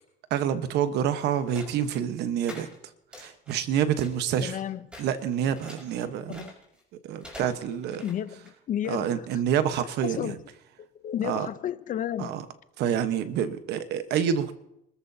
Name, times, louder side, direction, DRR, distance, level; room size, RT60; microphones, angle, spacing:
voice 1, 0.3-2.7 3.2-4.6 5.0-6.5 7.0-8.0 8.9-10.3 11.2-11.5 12.2-12.4 12.8-14.5, right 9 dB, 80° right, 1.2 m, -27 dB
sound 1, 1.5-1.9 2.5-2.8 3.1-3.7 4.0-4.6 4.9-6.8 7.2-8.5, left 1 dB, 5° right, 5.1 m, -45 dB
voice 2, 4.4-4.9 6.3-6.5 8.0-9.4 9.7-10.4 10.9-12.3, left 10 dB, 50° left, 0.7 m, -33 dB
26.5 x 14.0 x 2.8 m
cardioid pair, 110°, 17 cm